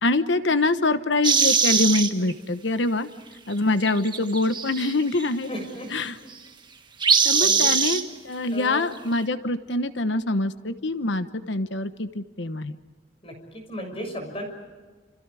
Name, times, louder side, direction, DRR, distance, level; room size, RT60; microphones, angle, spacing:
voice 1, 0.0-3.1 3.5-5.5 5.9-6.2 7.2-12.8, left 2 dB, 80° left, 11 dB, 1.2 m, -24 dB
sound 1, 1.2-2.3 3.9-5.3 7.0-8.0, right 6 dB, 25° right, 1.5 m, -21 dB
voice 2, 5.5-5.9 7.4-7.7 8.5-9.0 13.2-14.4, equal, 30° left, 4 dB, 6.5 m, -35 dB
29.5 x 29.0 x 4.9 m, 1.4 s
head